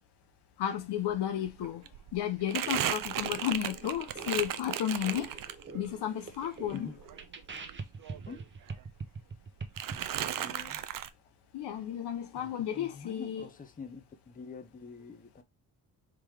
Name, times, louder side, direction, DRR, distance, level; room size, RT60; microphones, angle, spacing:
voice 1, 0.6-1.8 2.1-5.3 5.7-6.9 11.5-13.5, left 10 dB, 90° left, 1.1 m, -33 dB
Crumpling crinkling, 1.1-1.2 1.5-5.9 6.3-8.4 8.7-9.4 9.8-11.1, right 10 dB, 55° right, 0.6 m, -36 dB
sound 1, 2.5-10.0, right 4 dB, 30° right, 0.9 m, -44 dB
voice 2, 10.2-10.8 12.3-15.4, left 5 dB, 20° left, 0.8 m, -46 dB
3.8 x 2.9 x 4.8 m
cardioid pair, 95°, 39 cm